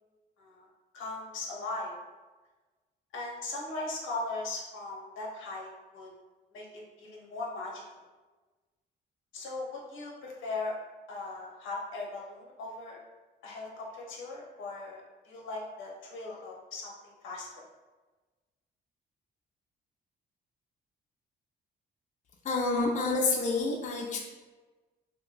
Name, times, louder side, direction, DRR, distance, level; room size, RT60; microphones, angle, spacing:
voice 1, 0.9-1.9 3.1-6.1 6.5-7.8 9.3-10.7 11.1-13.0 13.4-17.6, left 2 dB, 85° left, -2 dB, 0.8 m, -39 dB
voice 2, 22.4-24.2, left 3 dB, 35° left, -1 dB, 0.5 m, -28 dB
2.6 x 2.3 x 3.7 m, 1.2 s
cardioid pair, 90°, 20 cm